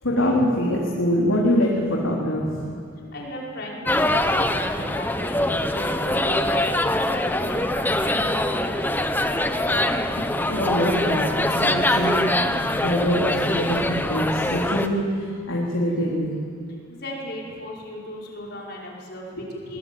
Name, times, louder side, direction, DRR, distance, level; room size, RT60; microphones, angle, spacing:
voice 1, 0.0-2.6 10.2-12.3 12.7-16.3, equal, 85° left, -3 dB, 3.6 m, -24 dB
voice 2, 3.1-9.1 16.7-19.8, equal, 50° left, -2 dB, 5.6 m, -36 dB
sound 1, 3.9-14.9, left 1 dB, 10° left, 0.9 m, -23 dB
21.5 x 21.0 x 9.4 m, 2.3 s
head